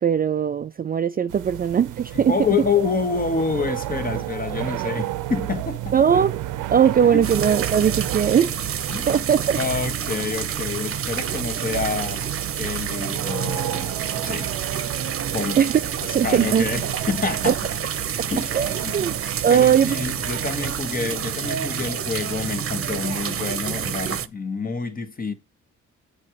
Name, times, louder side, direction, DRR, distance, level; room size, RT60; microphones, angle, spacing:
voice 1, 0.0-2.4 5.9-6.4 6.7-8.5 9.1-9.6 15.6-15.8 16.1-16.7 17.5-17.6 18.5-19.2 19.4-20.0, right 8 dB, 30° right, 0.4 m, -19 dB
sound 1, 1.3-20.8, right 14 dB, 90° right, 0.8 m, -33 dB
voice 2, 2.1-6.0 6.8-7.2 8.9-9.2 9.6-12.2 12.6-13.9 14.2-14.5 15.3-15.6 16.2-17.6 18.3-19.0 19.5-25.3, left 5 dB, 30° left, 1.5 m, -27 dB
sound 2, 7.2-24.3, right 8 dB, 45° right, 0.9 m, -28 dB
7.5 x 5.1 x 4.8 m
cardioid pair, 90°, 30 cm